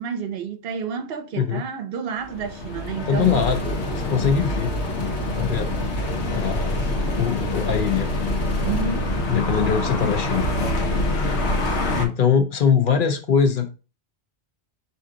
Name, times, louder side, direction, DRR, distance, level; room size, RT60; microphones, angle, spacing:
voice 1, 0.0-3.5 8.6-9.1, right 6 dB, 70° right, 0.8 m, -30 dB
sound 1, 2.2-12.1, left 1 dB, 85° left, 1.1 m, -25 dB
voice 2, 3.1-4.7 5.4-5.7 6.3-6.7 7.2-8.1 9.3-10.5 12.0-13.7, left 7 dB, 60° left, 0.7 m, -22 dB
Engine, 3.1-9.0, equal, 15° left, 0.6 m, -34 dB
4.5 x 2.7 x 3.7 m
omnidirectional pair, 1.1 m